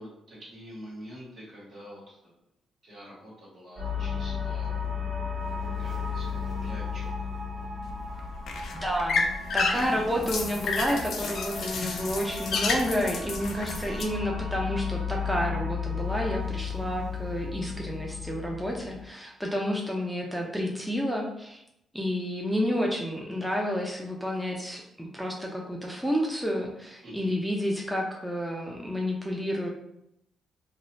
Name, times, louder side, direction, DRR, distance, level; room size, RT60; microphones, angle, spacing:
voice 1, 0.0-2.3 2.8-4.7 5.8-7.1 27.0-27.3, equal, 65° right, -6 dB, 1.3 m, -46 dB
sound 1, 3.8-19.0, left 5 dB, 35° right, 0.9 m, -34 dB
sound 2, 7.8-14.0, left 4 dB, 65° left, 0.4 m, -31 dB
voice 2, 8.7-9.3 9.5-21.6 21.9-29.7, equal, ahead, -1 dB, 0.5 m, -30 dB
2.6 x 2.0 x 3.0 m, 0.80 s
cardioid pair, 75°, 0 cm